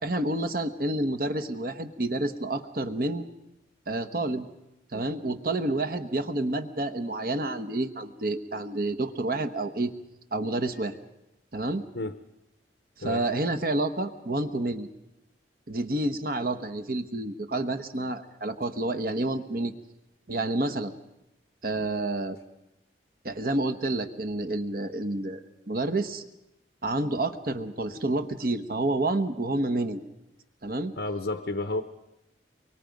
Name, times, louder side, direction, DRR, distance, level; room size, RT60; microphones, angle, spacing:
voice 1, 0.0-3.3 3.9-4.5 4.9-9.9 10.3-10.9 11.5-11.8 13.0-14.9 15.7-19.7 20.3-20.9 21.6-22.4 23.2-25.4 25.7-26.2 26.8-30.0 30.6-30.9, right 2 dB, 55° right, 9 dB, 1.1 m, -29 dB
voice 2, 31.0-31.8, left 2 dB, 70° left, 8 dB, 0.8 m, -31 dB
23.5 x 23.5 x 5.3 m, 0.89 s
head